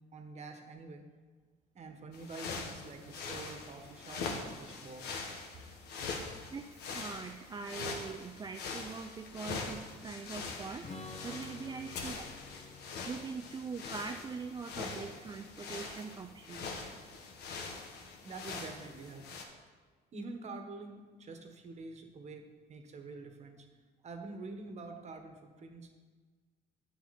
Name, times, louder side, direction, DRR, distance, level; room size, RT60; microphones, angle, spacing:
voice 1, 0.1-1.0 1.7-5.1 15.0-15.1 18.2-19.2 20.1-23.6 24.0-25.9, right 3 dB, 40° right, 5 dB, 1.4 m, -46 dB
sound 1, 2.1-19.4, left 4 dB, 75° left, 1.5 m, -43 dB
voice 2, 6.5-10.9 11.2-12.2 13.1-16.7, right 5 dB, 25° right, 5 dB, 0.4 m, -43 dB
Strum, 10.8-16.4, left 3 dB, 45° left, 1.6 m, -52 dB
9.8 x 8.0 x 4.2 m, 1.5 s
cardioid pair, 110°, 17 cm